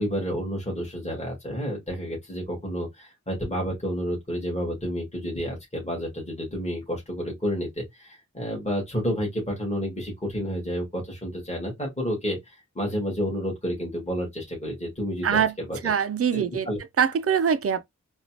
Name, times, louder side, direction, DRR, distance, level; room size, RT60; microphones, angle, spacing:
voice 1, 0.0-15.4 15.7-15.8 16.3-16.8, equal, 20° left, 2.0 m, -30 dB
voice 2, 15.2-15.5 15.8-16.7 17.0-17.8, right 7 dB, 50° right, 0.5 m, -23 dB
4.2 x 2.3 x 2.9 m
wide cardioid pair, 75°, 30 cm